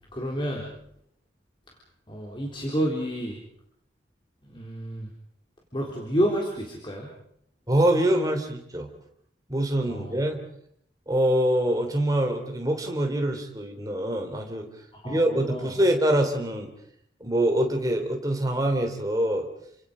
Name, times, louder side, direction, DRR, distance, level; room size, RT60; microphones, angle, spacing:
voice 1, 0.1-0.6 2.1-3.4 4.5-5.1 5.7-7.1 9.9-10.2 14.9-15.7, equal, 25° left, -1 dB, 3.6 m, -29 dB
voice 2, 7.7-8.9 9.5-10.4 11.1-14.7 15.0-16.7 17.2-19.5, right 1 dB, 20° right, 3 dB, 3.4 m, -24 dB
29.0 x 25.5 x 5.1 m, 0.71 s
head